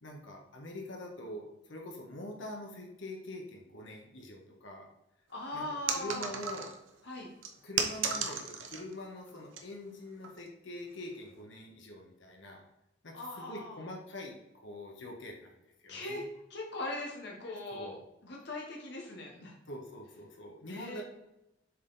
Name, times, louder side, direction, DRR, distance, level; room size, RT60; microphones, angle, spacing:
voice 1, 0.0-4.9 5.5-5.7 5.9-6.7 7.6-12.6 13.0-16.2 17.4-18.0 19.7-21.0, left 1 dB, 75° left, 1 dB, 1.4 m, -44 dB
voice 2, 5.3-6.3 7.0-7.3 13.1-13.8 15.9-16.2 16.5-18.0 18.2-19.6 20.7-21.0, left 2 dB, 60° left, -2 dB, 1.3 m, -40 dB
sound 1, 5.9-6.9 7.4-8.9 9.3-9.6 10.2-10.5, right 6 dB, 85° right, 0.9 m, -34 dB
7.2 x 4.1 x 4.1 m, 0.90 s
head